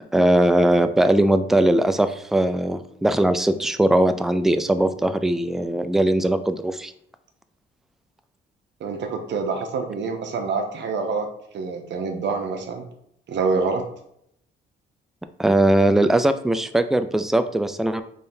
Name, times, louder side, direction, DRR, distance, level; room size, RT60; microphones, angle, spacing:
voice 1, 0.1-6.9 15.4-18.0, right 1 dB, ahead, 10 dB, 0.3 m, -20 dB
voice 2, 8.8-11.3 11.5-12.8 13.3-13.8, right 4 dB, 65° right, 4 dB, 0.8 m, -26 dB
3.6 x 3.2 x 4.4 m, 0.72 s
cardioid pair, 90°, 20 cm